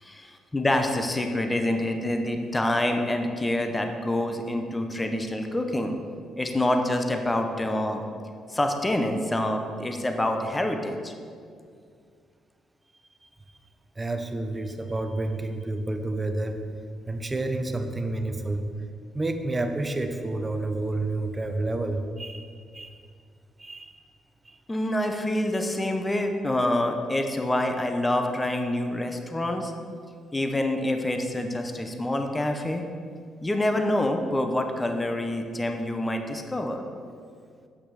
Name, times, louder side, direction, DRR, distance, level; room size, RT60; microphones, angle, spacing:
voice 1, 0.0-6.0 6.4-8.0 8.5-11.1 24.7-29.7 30.3-32.8 33.4-36.8, left 1 dB, 15° left, 5 dB, 0.8 m, -26 dB
voice 2, 14.0-16.6 17.1-18.7 19.1-23.0 23.6-24.0 24.4-24.6, right 2 dB, 20° right, 6 dB, 0.8 m, -30 dB
8.3 x 6.0 x 6.3 m, 2.2 s
cardioid pair, 90°, 0 cm